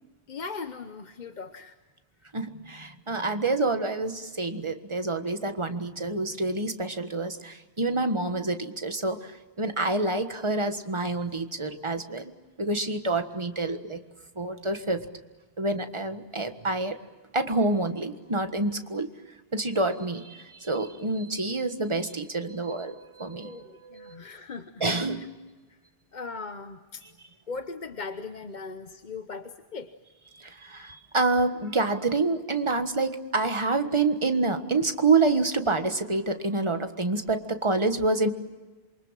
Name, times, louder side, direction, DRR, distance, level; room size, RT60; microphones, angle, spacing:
voice 1, 0.3-1.8 23.4-24.8 25.2-25.3 26.1-27.0 27.5-29.9, left 4 dB, 45° left, 9 dB, 1.0 m, -39 dB
voice 2, 2.3-12.3 12.6-14.0 14.3-15.0 15.6-17.0 17.3-19.1 19.5-24.2 24.8-25.2 30.3-38.3, right 3 dB, 25° right, 7 dB, 1.5 m, -27 dB
27.5 x 24.0 x 7.5 m, 1.2 s
omnidirectional pair, 1.1 m